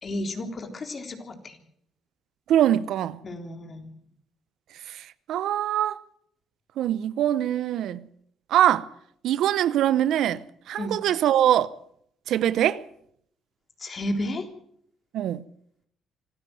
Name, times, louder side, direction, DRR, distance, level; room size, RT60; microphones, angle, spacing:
voice 1, 0.0-1.6 3.2-3.8 10.8-11.0 13.8-14.5, left 1 dB, 45° left, 3.7 m, -32 dB
voice 2, 2.5-3.2 4.9-6.0 6.8-8.1 8.5-8.9 9.2-10.4 10.7-11.7 12.3-12.8 15.1-15.4, right 11 dB, 75° right, 0.8 m, -23 dB
25.0 x 13.5 x 7.8 m
supercardioid pair, 65°, 0 cm